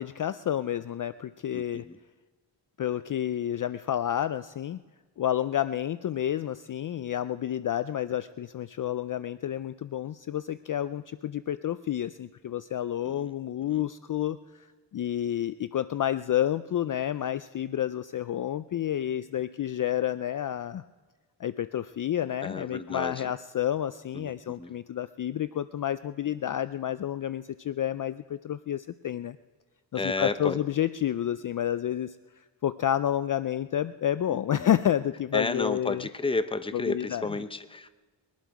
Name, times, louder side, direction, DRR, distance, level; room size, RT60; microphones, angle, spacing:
voice 1, 0.0-1.8 2.8-4.8 5.2-14.7 14.9-20.8 21.4-29.4 29.9-32.2 32.6-36.1 36.7-37.3, left 11 dB, 45° left, 14 dB, 0.4 m, -30 dB
voice 2, 1.5-2.0 13.0-13.3 13.6-13.8 22.4-23.3 24.1-24.7 29.9-30.6 34.3-34.7 35.3-37.9, left 3 dB, 10° left, 11 dB, 0.7 m, -32 dB
21.5 x 11.5 x 4.7 m, 1.3 s
cardioid pair, 90°, 45 cm